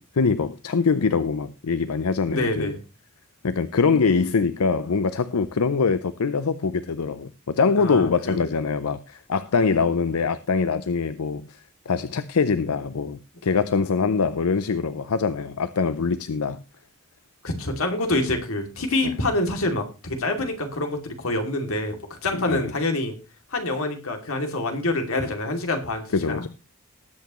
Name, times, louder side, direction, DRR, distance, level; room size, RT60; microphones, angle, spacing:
voice 1, 0.1-2.7 3.4-11.6 11.9-16.6 19.0-19.1 22.3-22.7 26.1-26.5, left 5 dB, 90° left, 0.6 m, -23 dB
voice 2, 2.3-2.8 7.8-8.4 17.4-23.2 23.5-26.5, left 2 dB, 70° left, 2.7 m, -26 dB
19.5 x 8.2 x 3.1 m
head